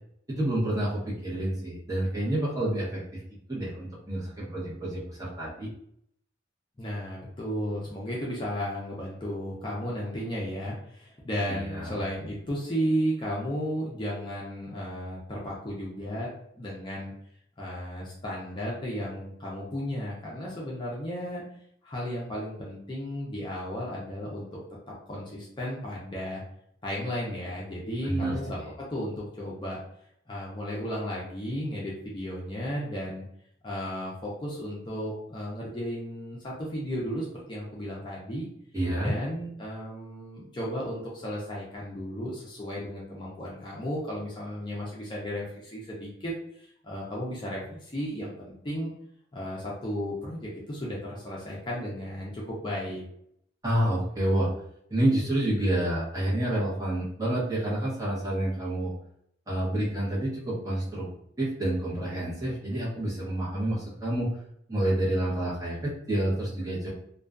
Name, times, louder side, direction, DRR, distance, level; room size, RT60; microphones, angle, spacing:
voice 1, 0.3-3.0 3.5-5.7 11.5-11.9 28.0-28.7 38.7-39.1 53.6-54.5 54.9-58.9 59.5-61.1 61.4-64.3 64.7-66.9, right 1 dB, 20° right, -8 dB, 0.8 m, -28 dB
voice 2, 6.8-16.3 16.5-17.1 17.6-21.4 21.8-24.6 25.1-26.4 26.8-29.8 30.3-33.2 33.6-38.5 39.0-48.9 49.3-53.0, equal, 25° left, -5 dB, 0.5 m, -34 dB
2.4 x 2.2 x 2.3 m, 0.70 s
head